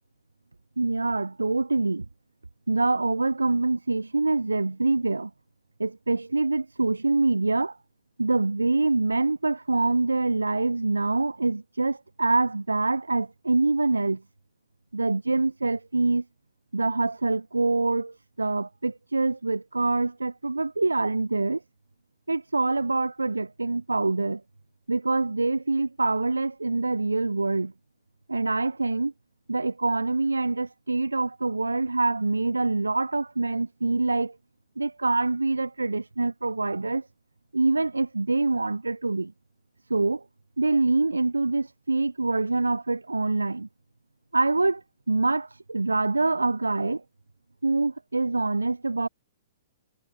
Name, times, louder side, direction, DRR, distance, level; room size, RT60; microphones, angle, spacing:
voice 1, 0.8-2.0 2.7-5.3 5.8-7.8 8.2-14.2 14.9-16.2 16.7-21.6 22.3-24.4 24.9-27.7 28.3-29.1 29.5-34.4 34.8-37.1 37.5-39.3 39.9-40.2 40.6-43.7 44.3-47.0 47.6-49.1, right 3 dB, 80° right, 5.0 m, -25 dB
figure-of-eight pair, 115°, 0 cm